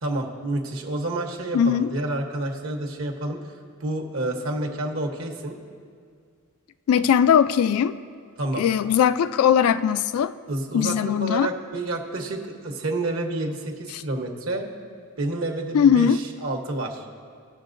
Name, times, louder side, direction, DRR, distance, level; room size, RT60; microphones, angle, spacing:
voice 1, 0.0-5.6 8.4-8.6 10.5-14.7 15.2-17.0, right 2 dB, 65° right, 2 dB, 1.0 m, -29 dB
voice 2, 1.5-1.9 6.9-7.9 8.6-10.3 10.7-11.5 15.7-16.2, left 8 dB, 85° left, 15 dB, 0.3 m, -19 dB
17.5 x 6.3 x 2.6 m, 2.2 s
head